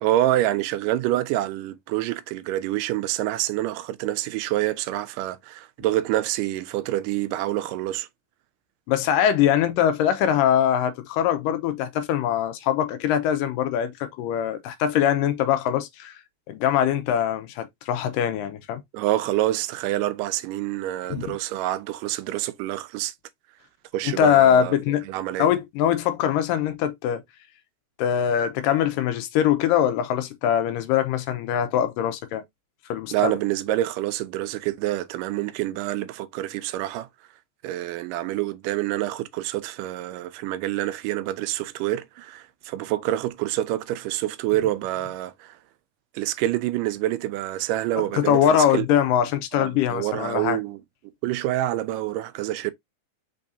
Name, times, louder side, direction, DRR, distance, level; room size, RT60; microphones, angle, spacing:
voice 1, 0.0-8.1 18.9-23.1 23.9-24.7 25.1-25.5 33.1-37.1 37.6-45.6 46.1-48.9 49.5-50.8 51.2-52.7, right 14 dB, 80° right, 1.9 m, -27 dB
voice 2, 8.9-16.1 16.5-18.8 21.3-21.4 24.2-25.0 25.4-27.2 28.0-32.4 32.9-33.4 48.0-50.6, left 9 dB, 80° left, 2.1 m, -22 dB
5.4 x 3.6 x 2.6 m
omnidirectional pair, 4.1 m